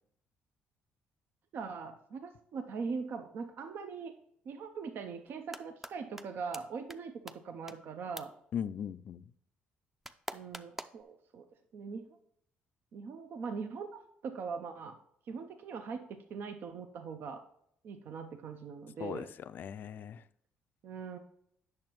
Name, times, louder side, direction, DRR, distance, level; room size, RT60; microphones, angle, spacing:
voice 1, 1.5-4.1 4.5-8.3 10.3-11.5 11.7-12.0 12.9-15.0 15.3-17.4 17.8-19.3 20.8-21.2, right 5 dB, 65° right, 0.6 m, -41 dB
sound 1, 5.3-5.9 6.2-6.3 6.5-6.6 6.9-7.0 7.3-7.4 7.7-7.8 8.2-8.3 10.0-11.0, right 1 dB, 5° right, 0.4 m, -42 dB
voice 2, 8.5-9.3 19.0-20.2, left 8 dB, 55° left, 0.3 m, -39 dB
8.6 x 6.5 x 3.0 m
cardioid pair, 80°, 4 cm